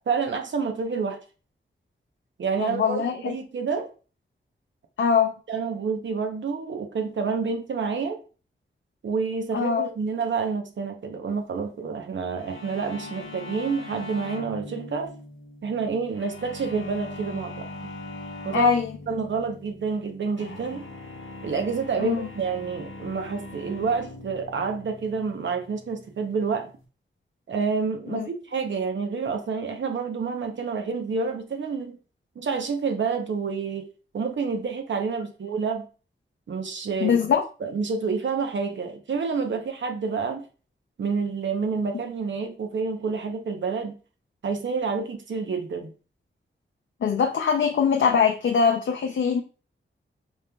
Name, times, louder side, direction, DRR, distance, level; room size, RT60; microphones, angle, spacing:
voice 1, 0.1-1.2 2.4-3.9 5.5-8.2 9.0-15.1 15.6-17.7 18.4-18.8 19.1-20.9 21.4-26.7 27.5-32.0 32.4-33.9 34.1-35.9 36.5-37.2 37.6-40.5 41.0-44.0 44.4-45.9, right 5 dB, 70° right, 0.7 m, -28 dB
voice 2, 2.6-3.3 5.0-5.3 9.5-9.9 18.5-18.9 22.0-22.3 28.1-28.3 37.0-37.4 47.0-49.4, left 7 dB, 70° left, 0.5 m, -22 dB
sound 1, 12.4-26.8, left 2 dB, 85° left, 0.9 m, -41 dB
5.2 x 3.0 x 2.2 m
wide cardioid pair, 145°, 20 cm